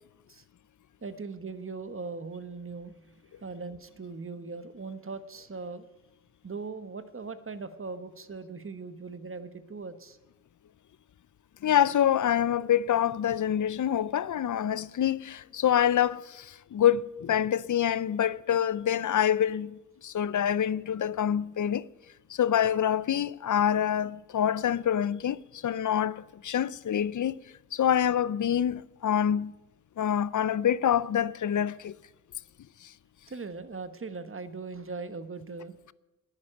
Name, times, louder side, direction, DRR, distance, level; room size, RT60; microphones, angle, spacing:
voice 1, 1.0-3.1 3.4-5.8 6.4-10.2 33.3-35.7, right 4 dB, 40° right, 1.1 m, -39 dB
voice 2, 11.6-21.9 22.3-27.4 27.7-29.5 30.0-32.0 32.8-32.9, left 9 dB, 70° left, 0.5 m, -26 dB
10.5 x 10.0 x 8.9 m
cardioid pair, 55°, 32 cm